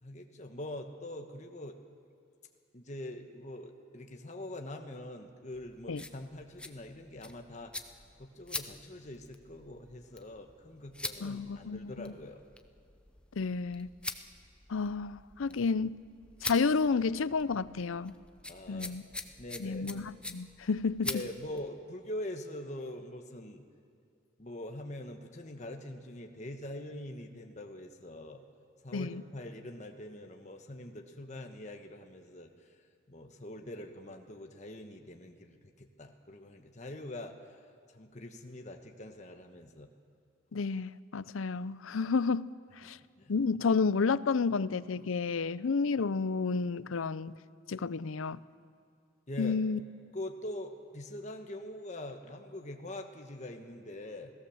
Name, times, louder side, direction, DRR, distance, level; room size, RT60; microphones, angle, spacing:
voice 1, 0.0-1.8 2.7-7.7 8.2-12.4 18.5-19.0 19.4-19.9 21.0-23.6 24.4-28.4 28.8-32.5 33.1-37.6 37.9-39.9 43.2-43.3 49.3-49.6 50.1-54.3, left 1 dB, 35° left, 1.2 m, -43 dB
sound 1, 5.5-21.7, left 2 dB, 5° left, 0.7 m, -45 dB
voice 2, 11.2-12.1 13.4-13.9 14.7-16.0 16.4-18.1 18.7-19.0 19.6-21.2 28.9-29.2 40.5-42.5 42.8-43.0 43.3-47.3 47.7-48.4 49.4-49.8, left 4 dB, 80° left, 0.6 m, -31 dB
28.5 x 17.5 x 7.2 m
head